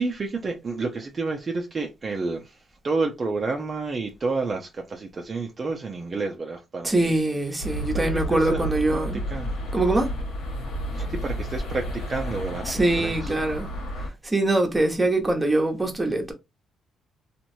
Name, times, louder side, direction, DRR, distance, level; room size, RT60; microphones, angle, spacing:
voice 1, 0.0-7.2 7.7-9.0 9.3-9.6 10.9-13.3, right 3 dB, 35° right, 0.5 m, -30 dB
voice 2, 6.8-9.2 9.7-10.1 12.6-13.7 14.2-16.3, right 2 dB, 15° right, 0.9 m, -23 dB
sound 1, 7.6-14.1, equal, 80° left, 1.3 m, -31 dB
3.0 x 2.5 x 2.7 m
cardioid pair, 90°, 0 cm